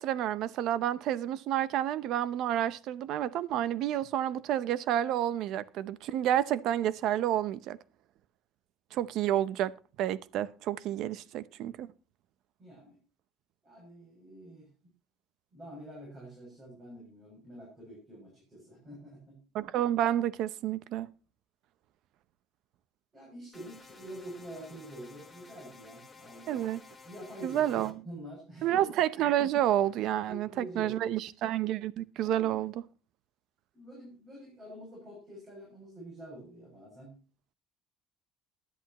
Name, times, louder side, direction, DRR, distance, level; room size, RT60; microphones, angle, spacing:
voice 1, 0.0-7.8 8.9-9.7 10.0-11.9 19.5-21.1 26.5-26.8 27.4-27.9 28.6-32.7, right 11 dB, 55° right, 0.7 m, -29 dB
voice 2, 12.6-13.0 13.6-14.7 15.5-19.4 23.1-26.6 27.0-28.8 30.3-31.2 32.2-32.5 33.7-37.2, right 1 dB, 25° right, 7.3 m, -47 dB
sound 1, 23.5-27.9, left 4 dB, 10° left, 1.5 m, -53 dB
18.5 x 11.0 x 3.0 m
cardioid pair, 150°, 0 cm